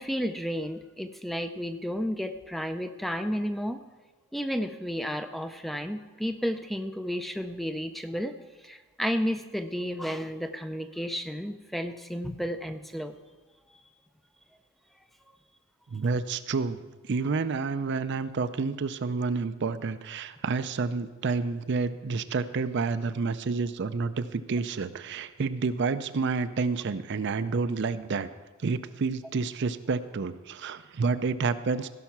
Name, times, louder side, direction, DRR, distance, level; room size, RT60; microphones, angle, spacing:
voice 1, 0.0-3.8 4.3-8.3 8.6-13.2, equal, ahead, 8 dB, 0.4 m, -32 dB
voice 2, 15.9-16.8 17.0-28.3 28.6-31.9, right 4 dB, 55° right, 12 dB, 0.5 m, -29 dB
16.5 x 5.8 x 5.9 m, 1.3 s
head